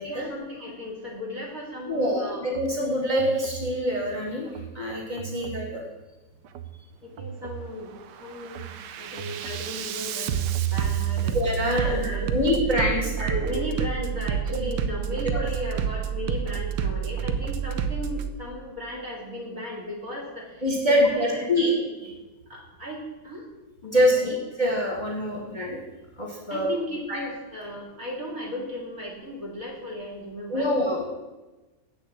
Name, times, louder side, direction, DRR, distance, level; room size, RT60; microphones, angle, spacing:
voice 1, 0.0-2.4 5.3-5.5 7.0-7.9 8.2-11.4 11.7-12.5 12.9-21.7 22.0-22.2 22.5-23.4 23.8-24.4 25.2-25.4 26.5-30.7, left 1 dB, 45° right, -2 dB, 2.8 m, -36 dB
voice 2, 1.9-4.5 4.7-5.8 11.3-13.4 15.3-15.4 20.6-21.7 23.8-24.3 24.6-25.8 26.2-26.7 27.1-27.2 30.5-31.0, equal, 25° left, -1 dB, 1.5 m, -25 dB
Bass drum, 2.5-2.7 3.2-3.7 4.5-4.7 5.2-5.7 6.5-6.7 7.2-7.7 8.1-18.3, right 8 dB, 70° right, 1.2 m, -29 dB
8.0 x 7.0 x 7.3 m, 1.1 s
omnidirectional pair, 2.1 m